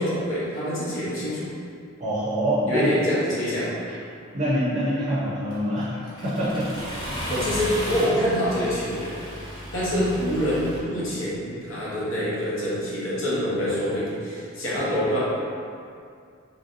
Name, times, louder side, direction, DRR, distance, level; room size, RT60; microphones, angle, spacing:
voice 1, 0.0-1.5 2.7-3.7 7.3-9.1 9.7-15.2, equal, 65° left, -8 dB, 0.9 m, -25 dB
voice 2, 2.0-2.9 4.3-5.9 6.2-6.7, equal, 35° right, -9 dB, 0.5 m, -25 dB
Accelerating revving vroom, 5.5-10.8, equal, 20° left, 0.5 m, -34 dB
3.2 x 2.7 x 2.5 m, 2.3 s
head